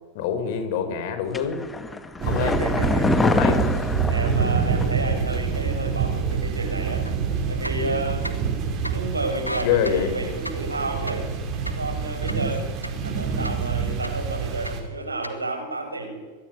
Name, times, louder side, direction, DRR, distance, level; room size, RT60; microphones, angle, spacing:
voice 1, 0.1-1.6 2.3-2.6 3.2-3.6 9.6-10.2, left 8 dB, 50° left, 10 dB, 5.3 m, -25 dB
sound 1, 1.3-5.0 5.3-5.4, left 3 dB, 10° left, 2.2 m, -25 dB
sound 2, 2.2-14.8, right 6 dB, 35° right, 6.8 m, -27 dB
voice 2, 2.2-3.5 4.1-7.1 7.5-11.3 11.7-12.7 13.0-16.3, right 2 dB, 80° right, 6 dB, 6.3 m, -31 dB
sound 3, 7.0-7.2 7.5-8.6 8.8-9.0 9.3-13.1 13.4-14.3 14.6-15.3, equal, 90° left, 1.9 m, -35 dB
23.5 x 23.0 x 9.8 m, 1.4 s
figure-of-eight pair, 90°, 0 cm